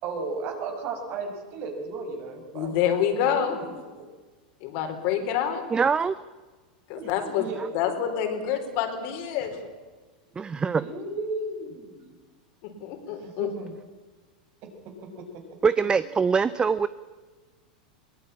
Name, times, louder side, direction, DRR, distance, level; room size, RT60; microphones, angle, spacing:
voice 1, 0.0-2.8 3.3-4.0 7.0-7.1 7.4-7.8 10.8-12.1 13.1-13.7 14.9-15.4, right 3 dB, 50° right, 5 dB, 5.5 m, -35 dB
voice 2, 2.5-3.6 4.6-5.6 6.9-7.5 7.7-9.6 12.6-13.5, left 9 dB, 55° left, 5 dB, 4.5 m, -27 dB
voice 3, 5.7-6.2 10.4-10.8 15.6-16.9, right 5 dB, 20° right, 16 dB, 0.6 m, -23 dB
22.0 x 19.0 x 8.7 m, 1.3 s
hypercardioid pair, 110°, 5 cm